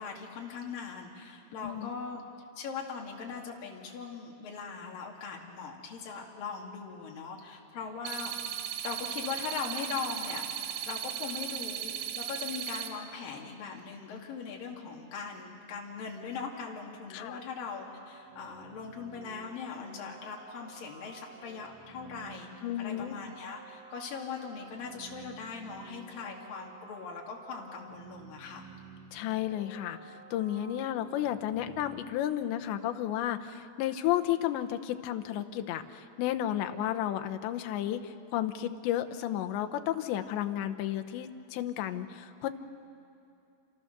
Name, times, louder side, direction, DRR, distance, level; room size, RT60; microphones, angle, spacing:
voice 1, 0.0-2.2 2.6-8.3 8.8-10.4 10.8-28.7, left 5 dB, 55° left, -1 dB, 4.0 m, -40 dB
sound 1, 8.1-12.9, right 10 dB, 85° right, 3.5 m, -37 dB
sound 2, 17.5-32.3, right 5 dB, 60° right, 3.5 m, -52 dB
voice 2, 22.6-23.2 29.1-42.5, left 12 dB, 90° left, 7 dB, 3.2 m, -32 dB
29.0 x 26.5 x 6.7 m, 2.6 s
omnidirectional pair, 4.9 m